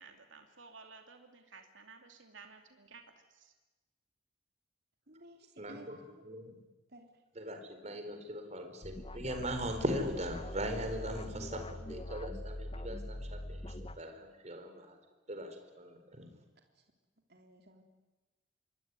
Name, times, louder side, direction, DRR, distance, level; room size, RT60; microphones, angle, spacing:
voice 1, 0.0-3.0 3.3-3.5, right 4 dB, 80° right, 5 dB, 2.7 m, -54 dB
voice 2, 5.1-6.2 6.9-7.1 16.8-16.9 17.3-17.8, right 1 dB, 55° right, 3 dB, 3.8 m, -55 dB
voice 3, 5.6-6.0 6.2-6.6 7.4-15.0 15.3-16.3, equal, 35° right, 6 dB, 4.4 m, -39 dB
sound 1, 8.8-14.0, left 1 dB, 30° left, 0.9 m, -43 dB
26.5 x 23.0 x 9.7 m, 1.2 s
head